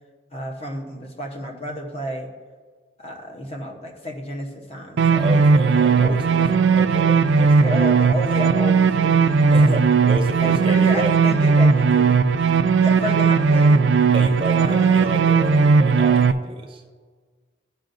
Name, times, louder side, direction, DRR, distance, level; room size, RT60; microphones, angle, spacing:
voice 1, 0.3-2.3 3.0-5.4 5.7-6.9 7.4-9.8 10.4-12.2 12.8-13.9 14.6-15.2, left 1 dB, 30° left, 2 dB, 0.9 m, -32 dB
sound 1, 5.0-16.3, right 5 dB, 70° right, 0.3 m, -17 dB
voice 2, 5.1-7.8 8.4-8.6 9.5-11.2 14.1-16.9, right 1 dB, 25° right, 5 dB, 0.6 m, -30 dB
14.5 x 5.5 x 2.6 m, 1.5 s
head